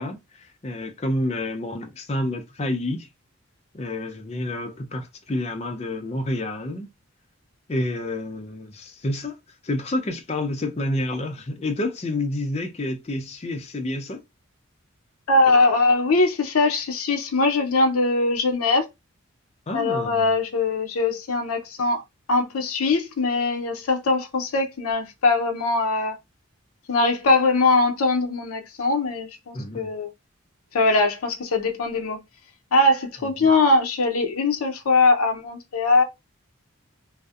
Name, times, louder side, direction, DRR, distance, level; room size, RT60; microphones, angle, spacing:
voice 1, 0.0-3.1 3.7-6.9 7.7-9.4 9.6-14.2 19.7-20.3 29.5-29.9 33.4-33.5, left 1 dB, 30° left, 0.4 m, -29 dB
voice 2, 15.3-18.8 19.7-22.0 22.3-26.2 26.9-30.1 30.7-32.2 32.7-36.0, left 3 dB, 85° left, 0.6 m, -21 dB
2.5 x 2.0 x 2.3 m
head